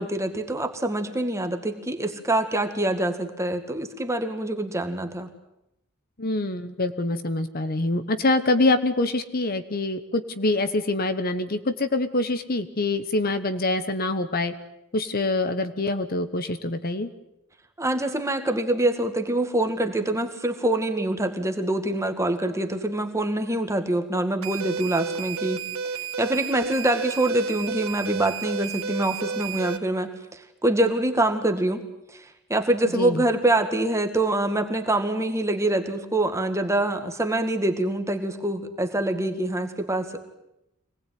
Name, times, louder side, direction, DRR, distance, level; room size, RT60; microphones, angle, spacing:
voice 1, 0.0-5.3 17.8-25.6 25.9-31.8 32.1-32.2 32.5-40.2, right 1 dB, 15° right, 6 dB, 1.9 m, -25 dB
voice 2, 6.2-14.5 14.9-17.1 32.9-33.2, left 2 dB, 45° left, 10 dB, 1.2 m, -25 dB
sound 1, 24.4-29.8, right 6 dB, 75° right, 2.1 m, -32 dB
25.5 x 19.0 x 9.4 m, 0.86 s
head